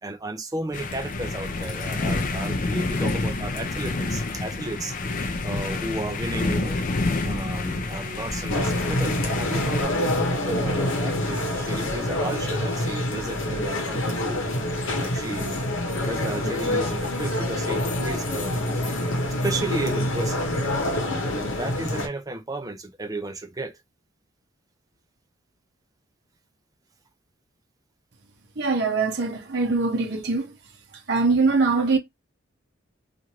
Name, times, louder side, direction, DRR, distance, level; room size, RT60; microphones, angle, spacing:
voice 1, 0.0-5.0 5.4-6.9 7.2-14.4 15.0-15.6 16.0-18.9 19.4-20.5 21.0-23.7, right 2 dB, 15° right, 0.4 m, -34 dB
sound 1, 0.7-9.9, left 2 dB, 40° left, 0.4 m, -28 dB
sound 2, 8.5-22.1, left 1 dB, 75° left, 0.9 m, -26 dB
voice 2, 28.6-30.5 31.1-32.0, right 3 dB, 50° right, 0.7 m, -22 dB
3.0 x 2.5 x 2.8 m
head